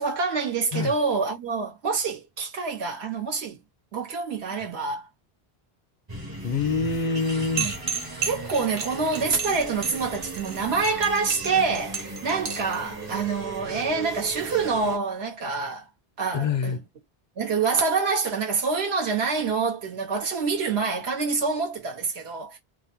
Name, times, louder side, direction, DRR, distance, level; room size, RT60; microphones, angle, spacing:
voice 1, 0.0-3.6 3.9-5.1 7.6-7.8 8.2-15.9 16.2-16.8 17.4-22.6, right 4 dB, 90° right, 1.2 m, -26 dB
sound 1, 6.1-15.0, right 2 dB, 25° right, 0.6 m, -37 dB
voice 2, 6.4-7.7 16.3-16.8, left 4 dB, 55° left, 0.6 m, -25 dB
sound 2, 7.6-12.8, right 5 dB, 55° right, 1.1 m, -32 dB
2.5 x 2.0 x 3.0 m
omnidirectional pair, 1.0 m